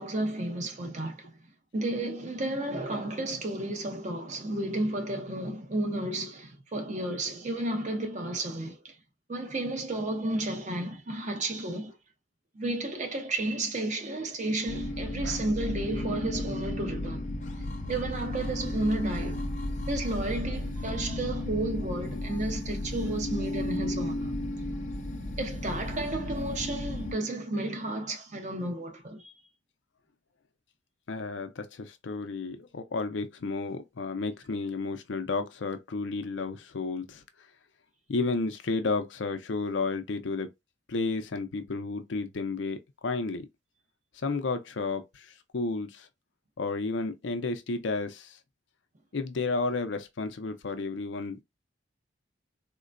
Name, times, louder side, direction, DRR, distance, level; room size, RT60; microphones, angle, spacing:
voice 1, 0.0-1.3 1.7-9.0 9.3-11.9 12.5-17.2 17.9-19.4 19.9-24.3 25.4-29.3, right 1 dB, 40° right, 0.7 m, -32 dB
sound 1, 14.7-27.1, left 1 dB, 45° left, 0.7 m, -34 dB
voice 2, 31.1-37.2 38.1-40.5 40.9-43.5 44.2-46.1 46.6-48.4 49.1-51.4, left 3 dB, 80° left, 0.6 m, -32 dB
3.7 x 2.1 x 2.5 m
head